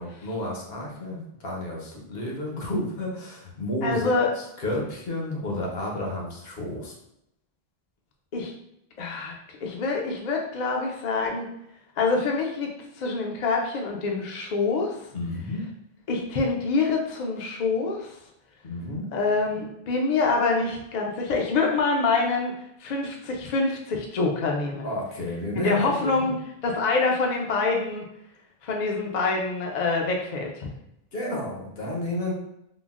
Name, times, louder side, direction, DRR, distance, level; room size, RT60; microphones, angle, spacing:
voice 1, 0.0-6.9 15.1-15.6 18.6-19.1 24.8-26.3 31.1-32.3, left 1 dB, 70° left, -1 dB, 1.0 m, -31 dB
voice 2, 3.8-4.3 8.3-8.5 9.0-9.3 9.6-11.5 12.0-12.7 13.0-15.0 16.1-18.1 19.1-22.5 22.8-24.9 25.5-28.0 28.6-30.7, left 3 dB, 55° left, 0 dB, 0.5 m, -25 dB
3.8 x 2.0 x 2.4 m, 0.79 s
omnidirectional pair, 1.0 m